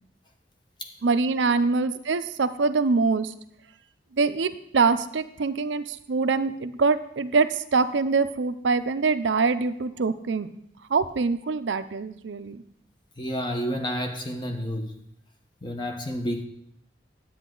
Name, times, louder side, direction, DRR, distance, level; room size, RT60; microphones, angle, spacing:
voice 1, 1.0-3.3 4.2-10.5 10.9-12.6, right 4 dB, 85° right, 0.6 m, -24 dB
voice 2, 13.2-15.0 15.6-16.4, equal, 25° left, 1.1 m, -30 dB
10.0 x 8.7 x 3.8 m
head